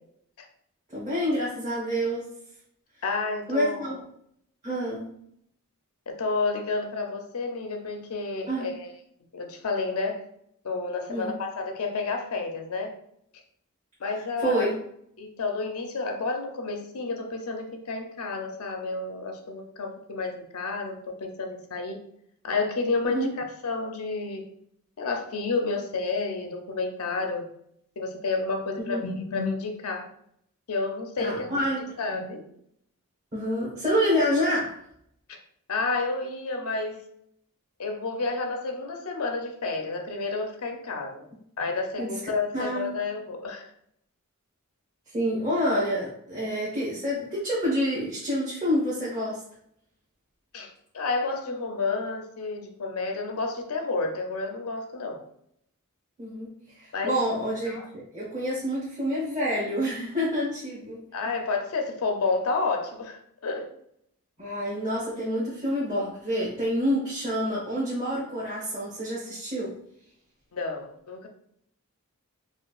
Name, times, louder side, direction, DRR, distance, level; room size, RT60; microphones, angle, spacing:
voice 1, 0.9-2.3 3.5-4.0 4.6-5.1 8.5-8.7 11.1-11.3 14.4-14.8 23.0-23.3 28.8-29.0 31.2-31.8 33.3-34.8 42.0-42.2 42.5-43.0 45.1-49.4 56.2-56.5 56.7-61.0 64.4-69.8, equal, 30° right, -9 dB, 1.1 m, -28 dB
voice 2, 3.0-4.0 6.1-8.9 9.3-10.2 10.6-12.9 14.0-14.7 15.2-22.0 22.4-24.4 25.0-27.5 28.0-30.1 30.7-31.5 32.0-32.4 35.3-35.4 35.7-37.0 37.8-41.3 41.6-43.7 50.5-55.2 56.9-57.2 57.7-57.8 61.1-63.7 70.5-71.3, left 3 dB, 90° left, 4 dB, 0.6 m, -30 dB
4.4 x 2.4 x 2.4 m, 0.71 s
head